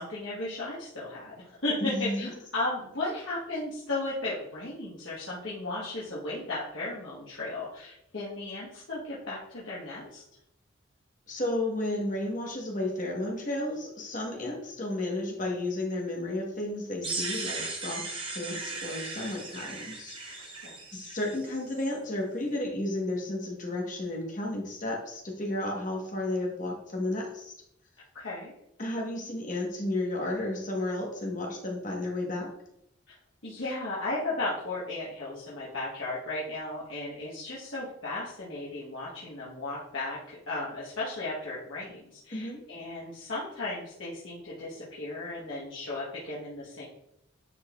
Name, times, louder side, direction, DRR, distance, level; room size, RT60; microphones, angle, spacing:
voice 1, 0.0-10.2 20.6-20.8 28.1-28.5 33.1-33.2 33.4-46.9, left 2 dB, 70° left, -8 dB, 1.3 m, -35 dB
voice 2, 1.8-2.3 11.3-20.6 20.9-27.5 28.8-32.5 42.3-42.6, left 1 dB, 40° left, -1 dB, 1.3 m, -33 dB
sound 1, 17.0-21.9, right 3 dB, 25° right, 0.9 m, -37 dB
9.7 x 4.0 x 2.4 m, 0.80 s
head